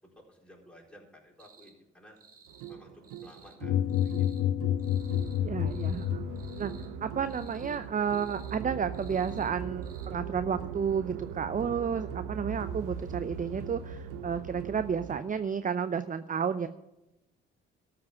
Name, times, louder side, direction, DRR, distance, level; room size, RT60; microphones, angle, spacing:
voice 1, 0.0-2.2 2.7-4.6, equal, 5° left, -2 dB, 4.3 m, -55 dB
sound 1, 1.4-1.7 2.2-2.8 3.0-3.6 3.9-4.4 4.8-5.4 5.7-6.1 6.3-6.9 7.3-7.8 8.1-8.6 8.9-9.5 9.8-10.1, right 5 dB, 50° right, 1.9 m, -57 dB
sound 2, 2.5-15.2, right 8 dB, 80° right, 0.8 m, -40 dB
sound 3, 3.6-6.9, left 10 dB, 60° left, 0.6 m, -29 dB
voice 2, 5.4-6.2 6.6-6.7 7.0-16.7, right 7 dB, 30° right, 12 dB, 0.6 m, -31 dB
13.5 x 5.9 x 9.1 m, 0.94 s
hypercardioid pair, 45°, 29 cm